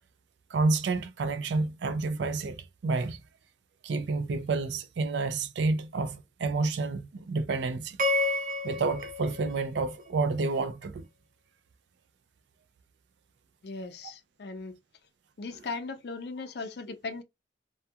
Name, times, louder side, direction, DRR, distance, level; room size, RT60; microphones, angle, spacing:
voice 1, 0.5-3.2 3.8-8.0 8.6-11.1, right 3 dB, 75° right, 0.4 m, -29 dB
sound 1, 8.0-10.4, left 2 dB, 45° right, 0.7 m, -31 dB
voice 2, 13.6-14.8 15.4-17.2, left 3 dB, 60° left, 0.5 m, -38 dB
2.3 x 2.3 x 2.7 m
head